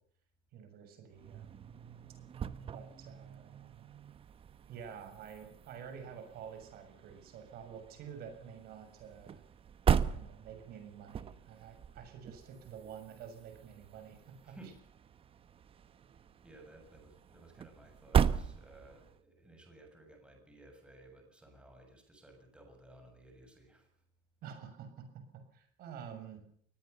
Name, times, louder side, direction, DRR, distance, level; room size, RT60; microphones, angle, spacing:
voice 1, 0.5-1.7 2.7-3.9 4.7-9.4 10.1-14.5 24.4-25.0 25.5-26.4, right 7 dB, 55° right, 7 dB, 6.8 m, -49 dB
sound 1, 1.1-19.2, right 7 dB, 30° right, 1.1 m, -38 dB
voice 2, 16.4-23.9, right 2 dB, 5° right, 3 dB, 6.9 m, -57 dB
23.0 x 19.5 x 6.8 m, 0.63 s
cardioid pair, 140°, 19 cm